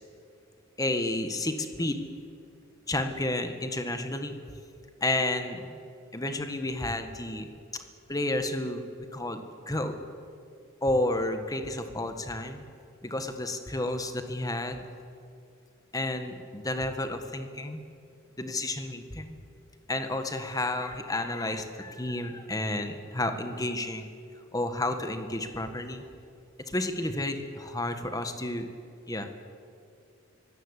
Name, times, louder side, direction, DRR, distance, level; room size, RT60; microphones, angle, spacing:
voice 1, 0.8-2.0 2.9-4.6 5.0-5.8 6.1-7.8 8.1-8.8 9.1-10.0 10.8-12.6 13.0-14.8 15.9-17.8 18.4-19.4 19.9-24.1 24.5-26.0 26.7-28.7 29.1-29.4, left 2 dB, 15° left, 7 dB, 1.6 m, -31 dB
24.0 x 17.0 x 8.4 m, 2.4 s
head